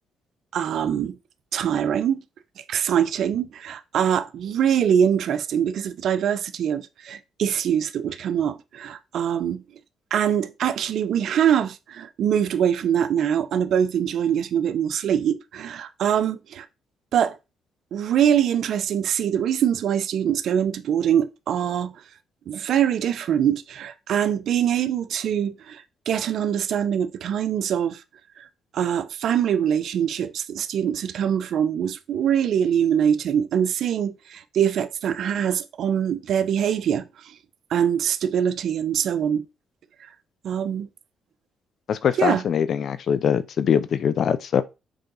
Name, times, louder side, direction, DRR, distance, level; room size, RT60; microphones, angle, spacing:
voice 1, 0.5-1.1 1.5-2.2 2.7-9.6 10.1-16.7 17.1-17.3 17.9-21.9 22.5-28.0 28.7-37.3 37.7-39.4 40.4-40.9 42.2-42.4, right 9 dB, 70° right, 0.9 m, -23 dB
voice 2, 41.9-44.6, left 8 dB, 60° left, 0.8 m, -22 dB
7.4 x 3.8 x 5.5 m
cardioid pair, 90°, 0 cm